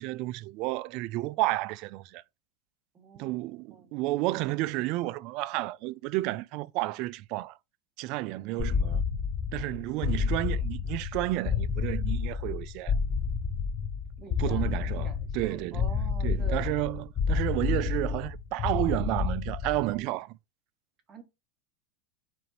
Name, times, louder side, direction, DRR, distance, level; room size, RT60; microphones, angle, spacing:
voice 1, 0.0-2.2 3.2-7.6 8.0-9.0 9.5-12.9 14.4-15.1 15.3-15.8 16.2-20.3, right 18 dB, 45° right, 0.3 m, -31 dB
voice 2, 2.9-3.4 3.7-3.9 8.5-8.7 14.2-16.7 21.1-21.2, right 6 dB, 25° right, 1.1 m, -45 dB
sound 1, 8.6-19.9, left 6 dB, 25° left, 0.7 m, -30 dB
4.3 x 3.8 x 3.0 m
supercardioid pair, 150°, 0 cm